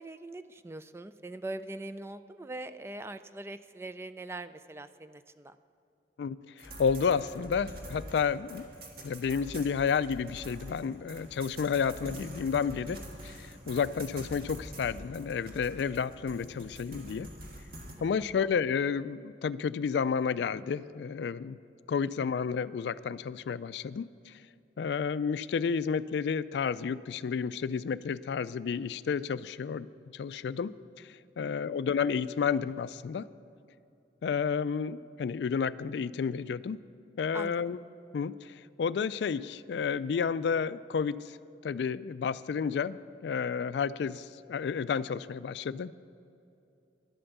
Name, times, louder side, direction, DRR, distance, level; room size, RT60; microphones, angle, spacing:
voice 1, 0.0-5.6 18.4-18.5 22.2-22.3 31.4-31.8 37.3-37.6, right 2 dB, 15° right, 12 dB, 0.3 m, -42 dB
voice 2, 6.2-8.7 9.0-13.0 13.2-17.3 18.0-21.6 21.9-24.3 24.8-29.9 30.1-30.7 31.4-33.3 34.2-36.8 37.2-37.8 38.1-41.4 41.6-45.9, left 6 dB, 70° left, 16 dB, 0.3 m, -31 dB
sound 1, 6.6-17.9, right 1 dB, 55° right, 1.7 m, -46 dB
11.5 x 8.7 x 7.1 m, 2.7 s
head